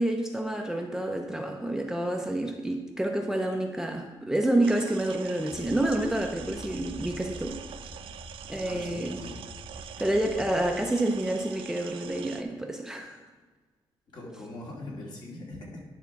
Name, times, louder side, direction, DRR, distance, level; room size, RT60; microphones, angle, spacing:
voice 1, 0.0-7.6 8.5-9.2 10.0-13.2, right 1 dB, 5° right, 3 dB, 0.6 m, -28 dB
sound 1, 4.6-12.4, right 9 dB, 75° right, 0.4 m, -44 dB
sound 2, 5.5-10.7, left 1 dB, 35° left, 1.8 m, -46 dB
voice 2, 8.6-9.4 14.1-15.8, left 1 dB, 55° left, -3 dB, 2.3 m, -41 dB
10.5 x 3.6 x 5.9 m, 1.3 s
cardioid pair, 120°, 9 cm